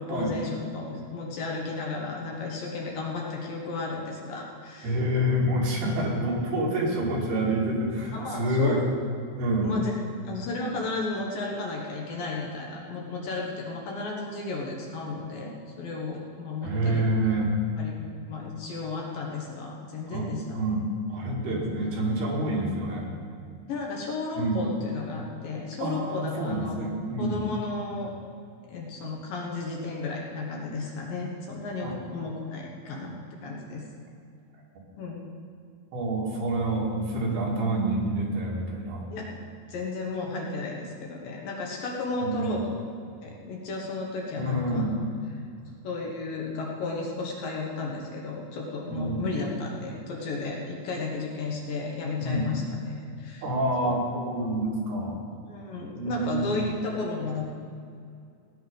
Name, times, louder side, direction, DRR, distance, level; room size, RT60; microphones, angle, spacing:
voice 1, 0.0-5.0 5.2-5.3 8.1-8.9 9.6-9.9 10.2-15.5 15.8-17.0 17.8-17.9 18.3-20.6 21.5-21.7 23.7-26.8 27.2-28.1 28.7-33.2 33.4-33.8 35.0-35.3 39.1-39.4 39.7-42.8 43.2-45.0 45.8-53.4 53.8-53.9 55.5-57.4, left 3 dB, 65° left, -1 dB, 2.9 m, -33 dB
voice 2, 4.8-8.8 9.4-9.7 16.6-17.5 20.1-20.3 20.5-23.1 24.4-24.6 25.8-27.4 31.8-32.0 35.9-39.0 42.2-42.6 44.4-45.0 48.9-49.3 52.2-52.5 53.4-55.2 56.0-56.7, right 1 dB, 70° right, -3 dB, 4.2 m, -27 dB
17.5 x 10.0 x 5.4 m, 2.3 s
omnidirectional pair, 4.8 m